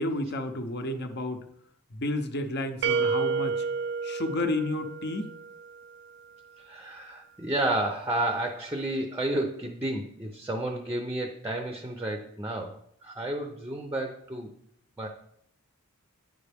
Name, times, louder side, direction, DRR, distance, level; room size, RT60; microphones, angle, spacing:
voice 1, 0.0-1.4 1.9-3.6 4.0-5.3, left 1 dB, 50° left, 6 dB, 0.8 m, -31 dB
sound 1, 2.8-5.7, right 5 dB, 50° right, 0.3 m, -30 dB
voice 2, 6.6-14.5 15.0-15.1, right 1 dB, 15° right, 3 dB, 0.6 m, -31 dB
9.3 x 5.3 x 3.5 m, 0.70 s
head